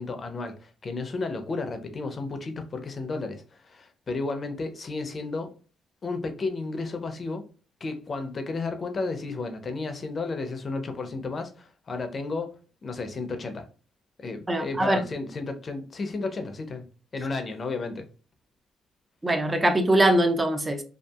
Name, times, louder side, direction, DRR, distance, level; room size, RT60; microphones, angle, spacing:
voice 1, 0.0-5.5 6.0-7.4 7.8-12.6 12.8-13.7 14.2-16.8 17.1-18.1, left 3 dB, 40° left, 0.5 m, -33 dB
voice 2, 14.5-15.0 19.2-20.8, right 1 dB, 20° right, 0.5 m, -22 dB
2.7 x 2.4 x 2.3 m
cardioid pair, 90°, 0 cm